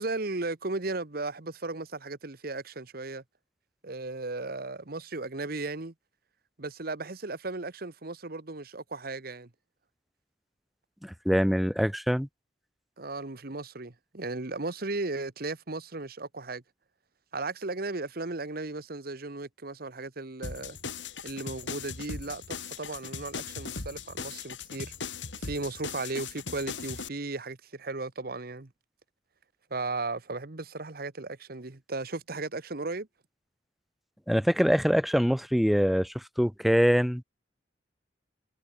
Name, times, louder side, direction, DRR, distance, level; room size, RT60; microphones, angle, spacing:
voice 1, 0.0-3.2 3.8-5.9 6.6-9.5 13.0-16.6 17.3-20.8 21.2-24.9 25.4-28.7 29.7-33.1, right 3 dB, 55° right, 1.3 m, -36 dB
voice 2, 11.0-12.3 34.3-37.2, equal, ahead, 0.5 m, -24 dB
sound 1, 20.4-27.1, left 5 dB, 85° left, 3.1 m, -39 dB
head